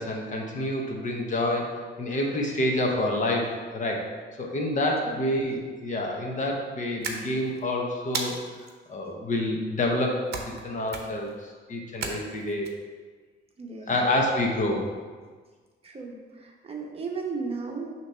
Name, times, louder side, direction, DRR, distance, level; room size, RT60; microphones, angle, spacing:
voice 1, 0.0-1.7 2.0-4.1 4.4-8.4 8.9-11.3 11.7-12.7 13.9-14.9, left 1 dB, 40° left, 0 dB, 1.0 m, -28 dB
sound 1, 7.0-7.6 8.1-8.7 10.3-10.6 10.9-11.3 12.0-12.7, right 4 dB, 60° right, 0.8 m, -34 dB
voice 2, 13.6-13.9 15.8-17.9, right 4 dB, 30° right, 0 dB, 0.9 m, -35 dB
6.3 x 3.0 x 5.6 m, 1.5 s
cardioid pair, 135°, 20 cm